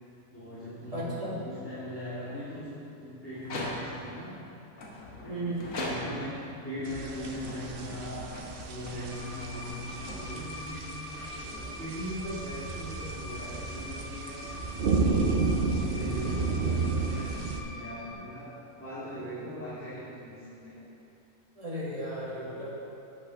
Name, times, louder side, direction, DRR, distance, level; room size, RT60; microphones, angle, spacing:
voice 1, 0.3-1.1 1.4-4.3 5.2-5.4 5.8-8.4 8.6-14.4 15.1-18.5 18.7-20.8, equal, 10° left, -13 dB, 2.1 m, -40 dB
voice 2, 0.9-1.3 5.3-5.7 21.6-22.7, right 1 dB, 25° right, -7 dB, 2.2 m, -35 dB
sound 1, 3.4-4.2 4.8-6.4 7.1-10.7, left 1 dB, 65° left, 1.7 m, -40 dB
sound 2, 6.9-17.6, right 3 dB, 55° right, 0.7 m, -32 dB
sound 3, 9.1-18.1, left 2 dB, 35° left, 0.8 m, -44 dB
8.6 x 6.0 x 6.2 m, 2.8 s
omnidirectional pair, 1.5 m